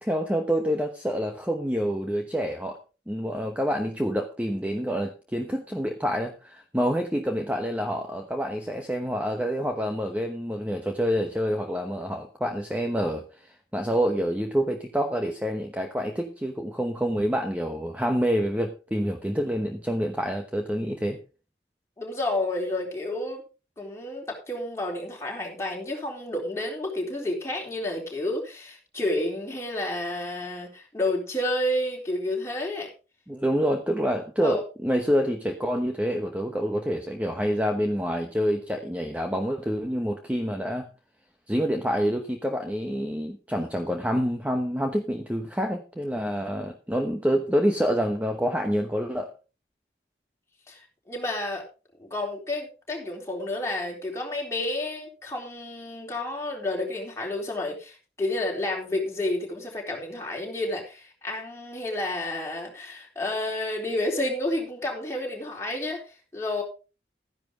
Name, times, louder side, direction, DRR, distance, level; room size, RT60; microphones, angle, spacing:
voice 1, 0.0-2.8 3.1-21.2 33.3-40.9 41.5-49.3, equal, 10° right, 4 dB, 1.0 m, -27 dB
voice 2, 22.0-23.4 23.8-32.9 34.4-34.6 50.7-50.8 51.1-51.6 52.0-66.6, left 1 dB, 15° left, -1 dB, 3.8 m, -30 dB
13.0 x 10.5 x 3.7 m, 0.33 s
head